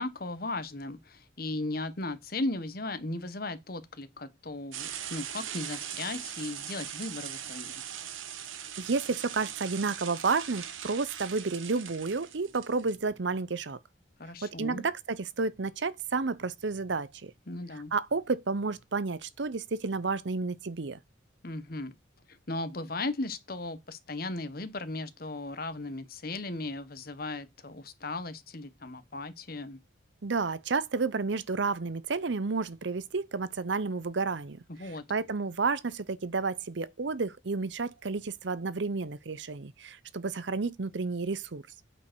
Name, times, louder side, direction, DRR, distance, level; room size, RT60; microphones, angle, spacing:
voice 1, 0.0-7.8 14.2-14.9 17.5-17.9 21.4-21.9 22.3-29.8 34.7-35.0, left 2 dB, 50° left, 1.2 m, -36 dB
sound 1, 4.7-13.0, right 9 dB, 85° right, 1.2 m, -40 dB
voice 2, 8.5-13.8 14.4-17.3 17.9-21.0 30.2-41.6, right 4 dB, 65° right, 0.7 m, -31 dB
8.6 x 5.2 x 6.1 m
head